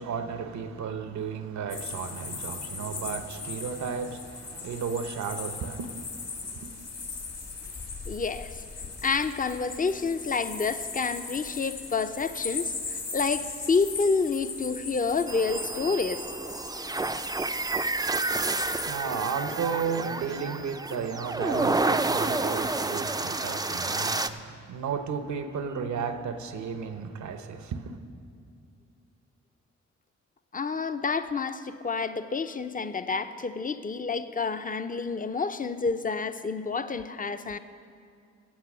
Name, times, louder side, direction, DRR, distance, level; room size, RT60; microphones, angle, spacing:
voice 1, 0.0-6.8 18.6-28.0, right 6 dB, 75° right, 9 dB, 0.9 m, -34 dB
sound 1, 1.7-18.9, left 4 dB, 60° left, 2.3 m, -38 dB
voice 2, 8.1-8.6 9.0-16.2 30.5-37.6, left 4 dB, 30° left, 11 dB, 0.7 m, -29 dB
sound 2, 15.3-24.3, right 3 dB, 15° right, 0.5 m, -29 dB
14.5 x 8.1 x 6.1 m, 2.4 s
cardioid pair, 60°, 29 cm